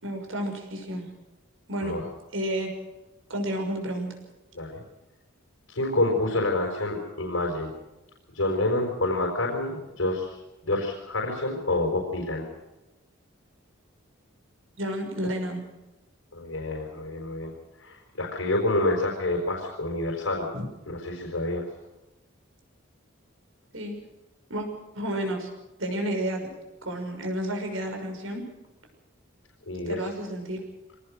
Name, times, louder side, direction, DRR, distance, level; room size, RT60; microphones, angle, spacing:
voice 1, 0.0-1.1 1.7-2.0 2.3-2.7 3.3-4.1 14.8-15.7 20.5-20.7 23.7-23.9 24.5-24.7 24.9-25.5 25.8-26.5 26.8-28.4 29.9-30.6, right 1 dB, 85° right, 2 dB, 6.2 m, -31 dB
voice 2, 5.7-7.7 8.3-12.5 16.3-17.5 17.8-20.5 20.9-21.7 29.7-30.1, left 2 dB, 85° left, 0 dB, 4.7 m, -28 dB
24.5 x 19.0 x 6.5 m, 1.0 s
head